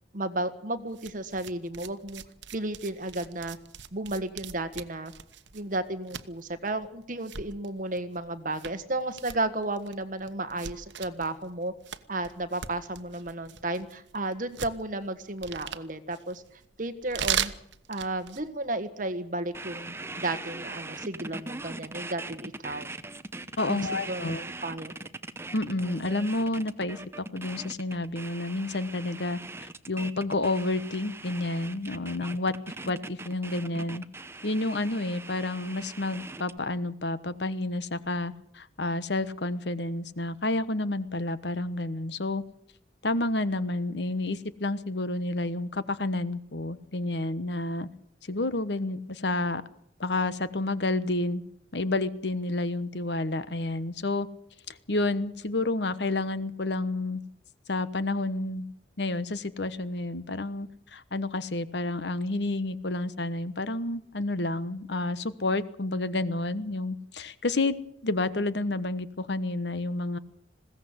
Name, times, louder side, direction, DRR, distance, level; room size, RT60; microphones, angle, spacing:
voice 1, 0.1-2.2 2.5-3.6 3.9-5.1 5.5-11.7 12.1-16.4 16.8-17.5 17.9-22.9 23.7-24.4 24.6-24.9, right 2 dB, 45° right, 10 dB, 1.6 m, -33 dB
sound 1, 0.9-18.5, right 9 dB, 80° right, 1.1 m, -39 dB
sound 2, 19.5-36.6, right 2 dB, 15° right, 0.8 m, -41 dB
voice 2, 23.6-24.5 25.5-32.5 32.8-34.1 34.4-42.4 43.0-47.9 48.2-49.6 50.0-51.4 51.7-54.3 54.7-57.2 57.7-58.6 59.0-67.8 68.0-70.2, left 2 dB, 70° left, 14 dB, 1.2 m, -30 dB
21.0 x 16.5 x 8.1 m, 0.69 s
head